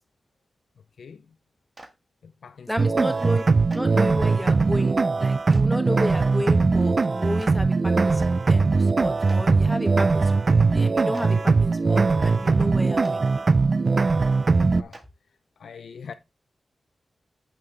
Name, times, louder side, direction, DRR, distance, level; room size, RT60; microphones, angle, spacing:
voice 1, 1.0-1.4 2.2-3.1 14.8-15.0 15.6-16.1, left 6 dB, 85° left, 0.5 m, -43 dB
Clapping, 1.7-1.9 3.7-3.8 5.5-5.6 7.4-7.5 9.3-9.4 11.1-11.2 13.0-13.1 14.9-15.0, right 1 dB, 30° right, 1.7 m, -44 dB
voice 2, 2.7-3.4 3.7-10.3 10.7-13.5, equal, ahead, 1.7 m, -32 dB
sound 1, 2.8-14.8, right 4 dB, 55° right, 0.4 m, -20 dB
8.7 x 5.5 x 3.3 m
cardioid pair, 50°, 0 cm